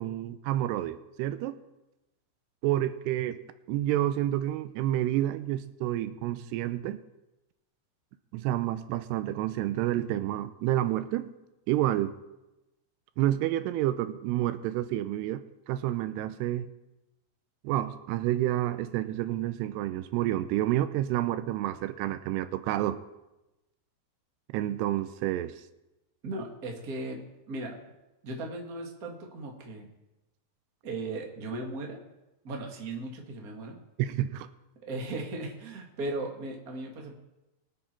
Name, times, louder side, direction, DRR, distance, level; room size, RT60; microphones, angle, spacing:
voice 1, 0.0-1.6 2.6-3.4 3.7-7.0 8.3-11.3 11.7-12.1 13.2-16.7 17.6-23.0 24.5-25.6 34.0-34.5, right 13 dB, 85° right, 12 dB, 2.7 m, -29 dB
voice 2, 26.2-27.8 28.2-29.9 30.8-32.0 32.4-33.8 34.8-37.1, right 2 dB, 40° right, 1 dB, 1.3 m, -37 dB
22.5 x 7.6 x 4.5 m, 0.98 s
omnidirectional pair, 4.8 m